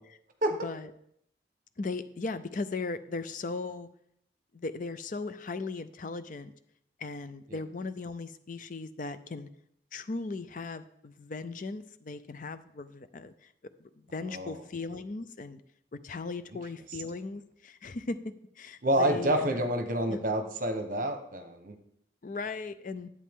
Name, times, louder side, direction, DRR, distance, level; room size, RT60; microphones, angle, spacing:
voice 1, 1.8-3.9 4.5-6.5 7.0-9.5 9.9-13.5 14.1-15.6 16.0-18.2 18.6-19.7 20.1-20.2 22.2-23.1, left 3 dB, 45° left, 13 dB, 0.5 m, -37 dB
voice 2, 14.3-14.6 18.8-21.7, right 1 dB, 45° right, 7 dB, 1.1 m, -28 dB
11.0 x 8.3 x 3.7 m, 0.71 s
head